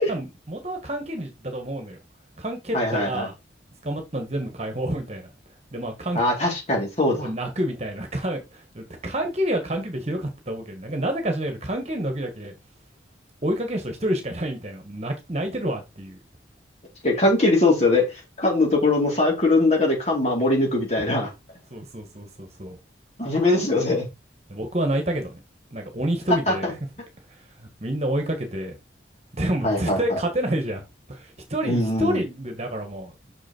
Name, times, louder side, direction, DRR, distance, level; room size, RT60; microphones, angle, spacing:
voice 1, 0.1-2.0 2.4-3.3 3.8-5.3 5.7-6.2 7.2-12.5 13.4-16.2 21.7-22.8 24.5-25.4 25.7-26.8 27.8-28.8 29.3-30.8 31.1-33.1, right 1 dB, 35° right, 1.7 m, -28 dB
voice 2, 2.7-3.3 6.1-7.3 17.0-18.0 18.4-21.3 23.2-24.1 26.5-26.6 29.6-30.2 31.6-32.2, left 2 dB, 35° left, 4.1 m, -21 dB
6.6 x 6.3 x 4.5 m
head